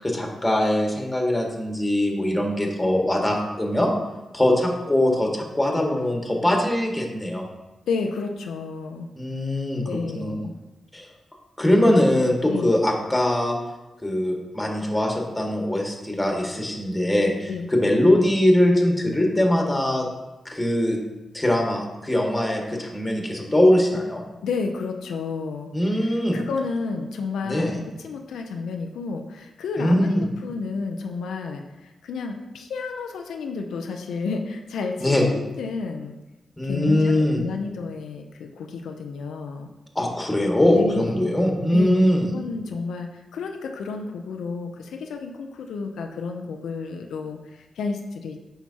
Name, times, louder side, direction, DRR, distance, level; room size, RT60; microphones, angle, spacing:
voice 1, 0.0-3.9 4.3-7.4 9.2-9.8 10.1-10.4 10.9-11.1 11.6-13.6 14.0-20.1 20.5-21.0 21.3-24.2 25.7-26.4 27.4-27.8 29.8-30.2 35.0-35.3 36.6-37.5 40.0-42.3, left 1 dB, 15° left, 0 dB, 1.7 m, -21 dB
voice 2, 7.9-9.1 9.8-10.5 12.5-12.7 17.5-17.7 24.4-36.2 36.6-39.7 40.7-41.3 41.7-48.4, left 4 dB, 90° left, 4 dB, 0.5 m, -31 dB
8.9 x 5.8 x 2.8 m, 1.1 s
cardioid pair, 60°, 0 cm